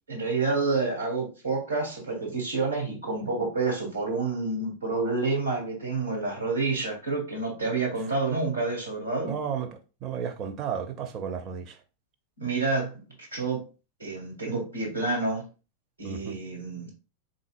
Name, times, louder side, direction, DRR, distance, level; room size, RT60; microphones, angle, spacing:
voice 1, 0.1-9.3 12.4-13.0 13.3-13.6 14.0-15.4 16.0-16.9, right 3 dB, 85° right, 1.9 m, -28 dB
voice 2, 9.2-11.8 16.0-16.4, right 7 dB, 35° right, 0.6 m, -33 dB
3.9 x 3.8 x 2.4 m
figure-of-eight pair, 90°, 0 cm